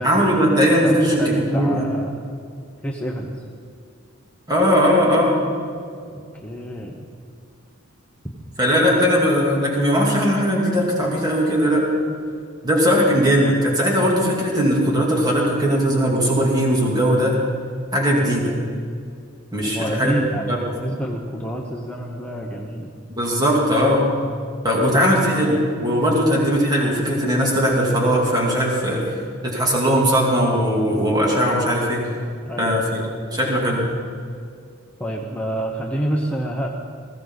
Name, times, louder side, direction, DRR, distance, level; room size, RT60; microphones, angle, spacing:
voice 1, 0.0-1.9 4.5-5.5 8.6-11.9 12.6-17.4 17.9-18.6 19.5-20.2 20.5-20.6 23.2-24.1 24.6-29.0 29.4-32.0 32.6-33.0 33.3-33.8, equal, 20° right, -3 dB, 3.1 m, -19 dB
voice 2, 0.8-2.2 2.8-3.3 6.1-7.1 19.7-22.9 32.4-32.8 35.0-36.7, equal, 5° left, -1 dB, 1.1 m, -28 dB
20.5 x 16.0 x 4.1 m, 2.3 s
head